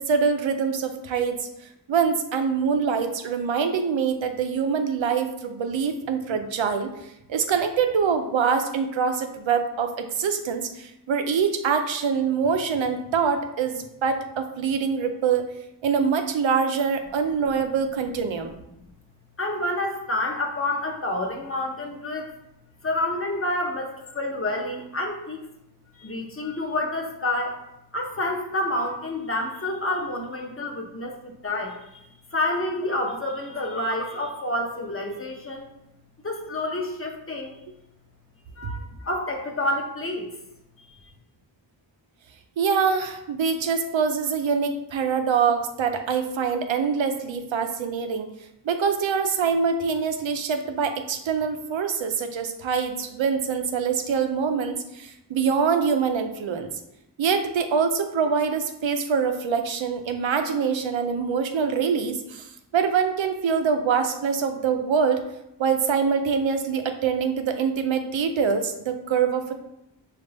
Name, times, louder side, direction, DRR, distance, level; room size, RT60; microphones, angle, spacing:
voice 1, 0.0-1.4 1.9-6.9 7.3-15.4 15.8-18.5 42.6-48.3 48.6-56.7 57.2-62.5 62.7-65.2 65.6-69.5, right 6 dB, 90° right, 7 dB, 0.5 m, -24 dB
voice 2, 19.4-22.3 22.8-25.5 25.9-27.6 27.9-32.0 32.3-35.7 36.2-37.6 38.6-40.3, left 1 dB, 30° left, 1 dB, 0.7 m, -28 dB
5.1 x 2.4 x 3.3 m, 0.86 s
wide cardioid pair, 75°, 45 cm